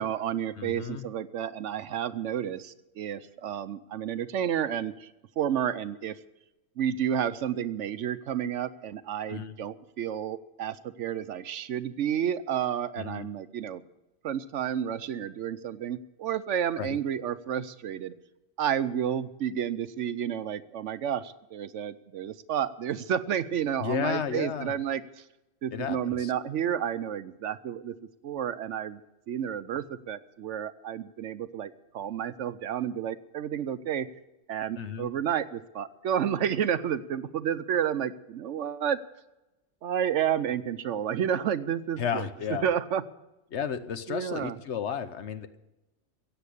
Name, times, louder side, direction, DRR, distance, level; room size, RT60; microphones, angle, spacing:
voice 1, 0.0-5.1 5.4-6.2 6.8-13.8 14.2-18.1 18.6-25.2 25.6-27.9 28.2-29.0 29.3-34.1 34.5-39.0 39.8-42.3 42.6-43.0 44.1-44.5, right 9 dB, 70° right, 14 dB, 0.9 m, -31 dB
voice 2, 0.6-1.1 9.3-9.6 13.0-13.3 16.8-17.0 23.8-24.7 25.7-26.3 34.8-35.1 42.0-42.7 43.5-45.6, left 7 dB, 60° left, 11 dB, 1.0 m, -33 dB
16.0 x 8.0 x 8.4 m, 0.98 s
omnidirectional pair, 1.4 m